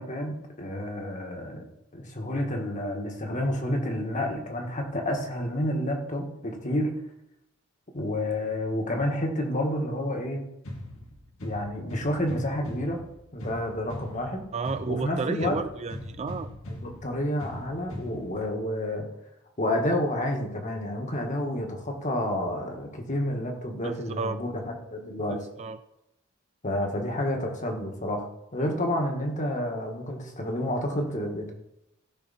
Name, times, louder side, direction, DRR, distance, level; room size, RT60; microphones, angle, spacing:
voice 1, 0.0-1.6 1.9-6.9 7.9-10.4 11.4-13.0 13.3-14.4 14.9-15.5 16.8-19.1 19.6-25.4 26.6-28.3 28.5-31.5, left 1 dB, 35° left, 2 dB, 1.7 m, -29 dB
sound 1, 10.6-18.6, left 1 dB, 85° left, 2.1 m, -40 dB
voice 2, 14.5-16.5 23.8-24.4 25.3-25.8, right 4 dB, 30° right, 11 dB, 0.4 m, -32 dB
16.0 x 5.9 x 4.2 m, 0.86 s
head